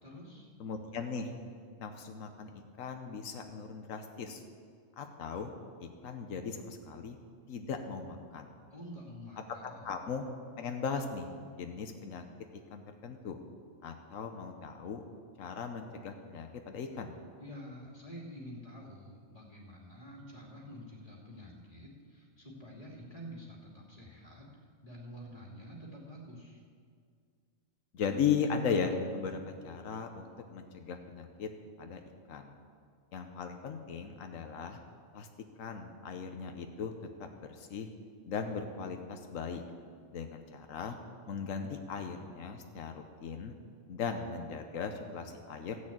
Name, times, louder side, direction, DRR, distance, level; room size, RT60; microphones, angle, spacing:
voice 1, 0.0-0.5 8.7-9.9 17.4-24.5 24.8-26.6, equal, 30° left, -3 dB, 2.7 m, -48 dB
voice 2, 0.6-1.3 1.8-4.4 5.0-5.5 5.8-7.2 7.5-8.5 9.6-10.3 10.6-12.2 12.5-13.4 13.8-15.0 15.4-17.1 27.9-31.5 31.8-32.0 32.3-32.5 33.1-34.8 35.1-35.3 35.6-36.9 37.2-37.9 38.3-39.6 40.1-41.0 41.3-43.5 43.9-45.8, left 6 dB, 90° left, 5 dB, 1.2 m, -37 dB
14.5 x 6.4 x 8.7 m, 2.1 s
omnidirectional pair, 1.3 m